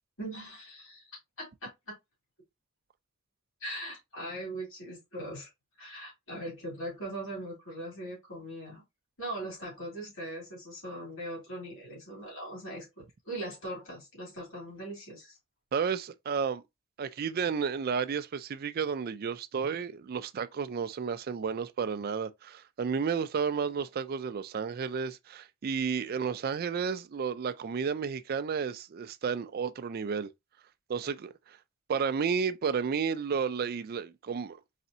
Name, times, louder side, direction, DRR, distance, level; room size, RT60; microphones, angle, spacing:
voice 1, 0.2-1.9 3.6-5.5 5.8-8.8 9.2-15.4, right 1 dB, 60° left, 2.7 m, -40 dB
voice 2, 15.7-16.6 17.0-30.3 30.9-31.3 31.9-34.6, right 6 dB, 45° right, 0.3 m, -32 dB
4.1 x 3.3 x 2.7 m
head